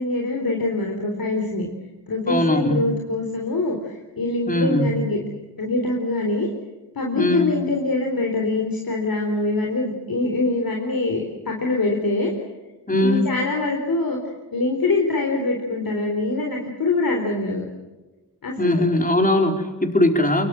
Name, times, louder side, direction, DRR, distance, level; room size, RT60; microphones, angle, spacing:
voice 1, 0.0-1.7 2.1-5.2 5.6-6.5 6.9-12.3 13.0-17.6 18.4-18.8, left 2 dB, 60° left, 1 dB, 4.2 m, -24 dB
voice 2, 2.3-2.8 4.5-4.9 7.2-7.5 12.9-13.3 18.6-20.5, left 1 dB, 20° left, 4 dB, 4.6 m, -20 dB
23.5 x 22.5 x 7.6 m, 1.2 s
cardioid pair, 65°, 40 cm